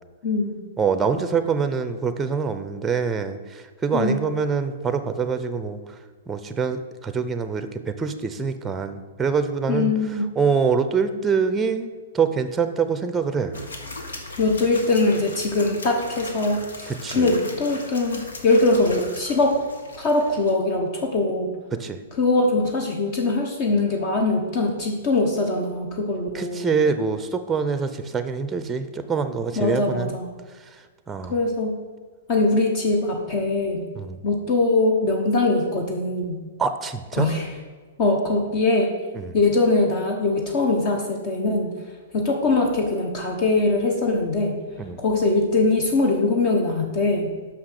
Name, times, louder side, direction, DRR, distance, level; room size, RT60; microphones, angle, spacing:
voice 1, 0.2-0.6 3.9-4.3 9.7-10.3 14.4-19.6 20.0-21.5 22.2-26.8 29.6-30.3 31.3-31.7 32.3-33.8 34.2-36.4 37.1-37.5 38.0-38.9 39.3-41.7 42.1-44.5 45.0-47.3, left 2 dB, 45° left, 2 dB, 1.1 m, -22 dB
voice 2, 0.8-5.8 6.3-9.9 10.4-11.9 12.1-13.6 16.9-17.3 21.7-22.0 26.3-30.1 31.1-31.3 34.0-34.2 36.6-37.3 39.1-39.3 44.8-45.0, right 5 dB, 15° right, 10 dB, 0.6 m, -25 dB
sound 1, 13.5-20.5, left 2 dB, 90° left, 1.4 m, -38 dB
5.9 x 5.8 x 6.5 m, 1.4 s
hypercardioid pair, 130°, 0 cm